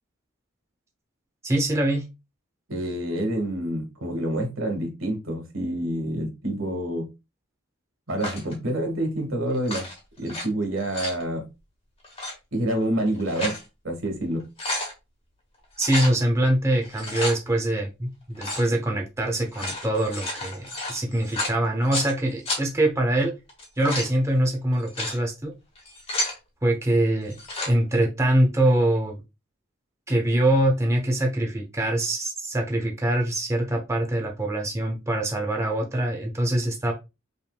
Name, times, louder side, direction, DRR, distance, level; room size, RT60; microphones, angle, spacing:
voice 1, 1.4-2.0 15.8-23.3 23.8-25.5 26.6-27.4 27.6-29.2 30.1-36.9, right 1 dB, 15° right, 0.7 m, -24 dB
voice 2, 2.7-7.1 8.1-9.9 10.2-11.4 12.5-14.4, right 1 dB, 80° right, 1.6 m, -27 dB
sound 1, 8.2-8.5 9.5-10.4 10.8-11.2 12.0-12.3 13.0-13.6 14.1-14.2 14.4-14.9 15.8-16.1 16.8-17.4 18.4-18.7 19.4-22.1 22.5-22.6 23.5-24.1 24.7-25.2 25.8-26.4 27.3-27.7, left 2 dB, 30° left, 1.5 m, -31 dB
5.3 x 3.4 x 2.2 m
head